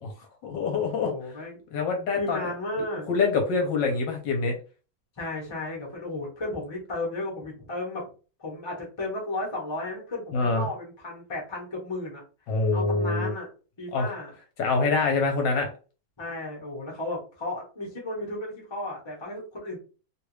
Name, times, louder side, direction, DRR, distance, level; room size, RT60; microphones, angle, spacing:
voice 1, 0.4-1.1 1.7-2.5 3.1-4.5 10.3-10.7 12.5-13.3 13.9-14.1 14.6-15.7, left 4 dB, 70° left, 3 dB, 1.3 m, -25 dB
voice 2, 1.0-1.6 2.1-3.1 5.2-8.0 8.4-12.2 12.7-13.5 13.8-14.3 16.2-19.8, left 2 dB, 20° left, -3 dB, 0.9 m, -34 dB
3.2 x 2.5 x 3.1 m, 0.35 s
omnidirectional pair, 2.1 m